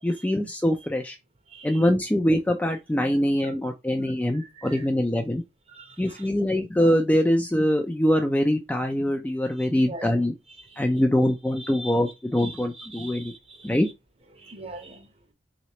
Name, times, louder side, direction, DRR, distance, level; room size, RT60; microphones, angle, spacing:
voice 1, 0.0-1.2 1.6-5.4 6.0-10.3 10.8-13.3 13.6-13.9, equal, 10° left, 0.4 m, -23 dB
voice 2, 1.5-1.9 3.4-3.5 4.3-4.9 5.7-6.3 9.6-10.2 10.6-11.1 11.6-12.0 12.4-13.9 14.3-15.1, right 2 dB, 30° right, 0.8 m, -43 dB
3.8 x 3.1 x 2.8 m
head